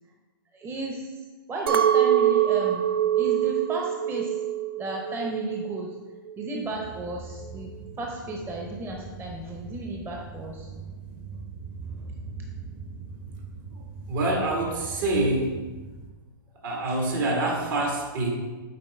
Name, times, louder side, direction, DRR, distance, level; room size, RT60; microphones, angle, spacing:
voice 1, 0.5-2.9 3.2-4.4 4.8-6.0 6.4-7.7 8.0-10.7 16.9-17.0, right 2 dB, 20° right, 0 dB, 0.8 m, -34 dB
Chink clink, 1.7-6.1 6.4-7.0, right 11 dB, 85° right, 0.5 m, -25 dB
sound 1, 6.6-16.1, right 4 dB, 40° right, 1.1 m, -41 dB
voice 2, 13.7-15.6 16.6-18.3, right 2 dB, 65° right, 0 dB, 1.9 m, -26 dB
7.5 x 4.3 x 3.5 m, 1.3 s
hypercardioid pair, 120°, 12 cm